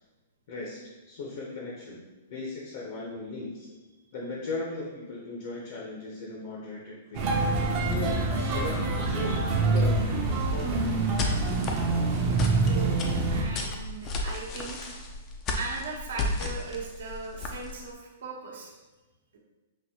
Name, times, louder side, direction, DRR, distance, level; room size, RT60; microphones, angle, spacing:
voice 1, 0.5-0.8 1.1-2.0 2.3-3.7 4.1-7.3 7.8-10.9, left 3 dB, 50° left, -3 dB, 0.8 m, -37 dB
sound 1, 7.1-13.4, right 3 dB, 30° right, 0.6 m, -26 dB
sound 2, 10.5-17.9, left 2 dB, 20° left, 0.4 m, -34 dB
voice 2, 12.0-12.9 13.2-14.8 15.6-18.7, right 4 dB, 75° right, -1 dB, 0.9 m, -38 dB
5.3 x 2.6 x 2.8 m, 1.2 s
hypercardioid pair, 165°, 0 cm